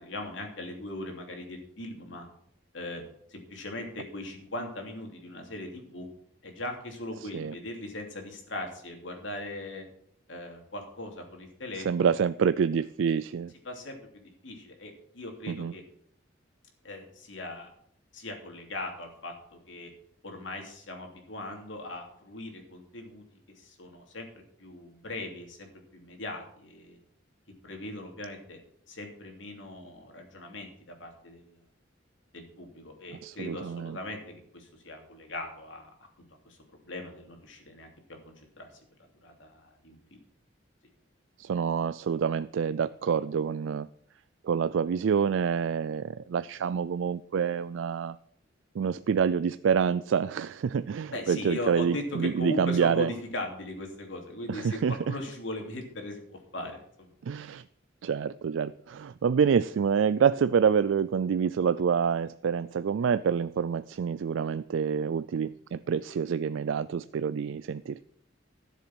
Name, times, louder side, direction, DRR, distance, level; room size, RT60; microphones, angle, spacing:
voice 1, 0.0-2.2 2.7-3.0 3.3-6.1 6.4-9.8 10.3-12.1 13.6-15.8 16.8-17.7 18.1-19.9 20.2-23.2 23.6-24.3 24.6-27.0 27.6-28.6 28.9-31.6 32.3-35.9 36.4-36.6 36.8-37.9 38.2-38.7 39.0-40.0 51.1-57.1, left 1 dB, 75° left, 3 dB, 2.9 m, -39 dB
voice 2, 7.2-7.5 11.8-13.5 15.5-15.7 33.1-34.0 41.4-43.9 44.4-48.2 48.7-53.1 54.5-55.2 57.2-57.6 58.0-68.0, right 6 dB, 80° right, 15 dB, 0.4 m, -27 dB
13.0 x 7.2 x 6.1 m, 0.69 s
head